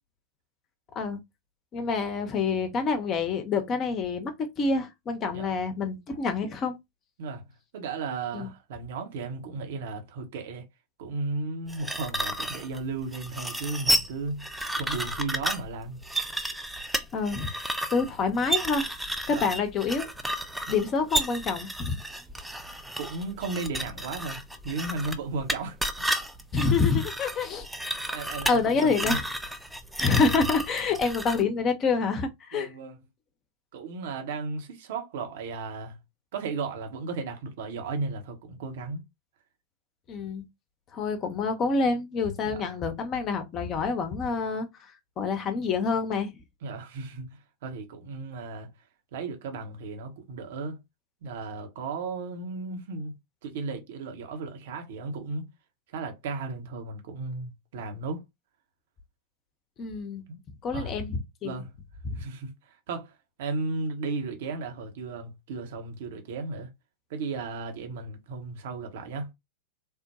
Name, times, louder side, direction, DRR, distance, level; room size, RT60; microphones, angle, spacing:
voice 1, 1.7-4.3 4.6-6.8 8.3-8.5 17.1-17.5 17.9-18.9 19.3-20.1 20.7-22.0 26.5-27.7 28.5-29.2 30.0-32.7 40.1-40.4 40.9-44.7 45.2-46.3 59.8-60.2 60.6-61.6 62.0-62.2, left 4 dB, 30° left, 0.7 m, -27 dB
voice 2, 7.7-10.6 11.0-16.1 19.3-19.4 20.7-20.8 23.0-26.2 28.1-29.2 32.5-33.0 33.7-36.0 36.3-39.0 42.4-42.6 46.6-48.7 49.1-50.8 51.2-53.1 53.4-55.5 55.9-58.3 60.3-60.4 60.7-60.9 61.4-61.8 62.1-66.7 67.1-69.3, right 3 dB, 55° right, 0.9 m, -35 dB
sound 1, 11.7-31.4, right 1 dB, 5° right, 0.4 m, -32 dB
3.4 x 2.1 x 2.8 m
figure-of-eight pair, 90°, 0 cm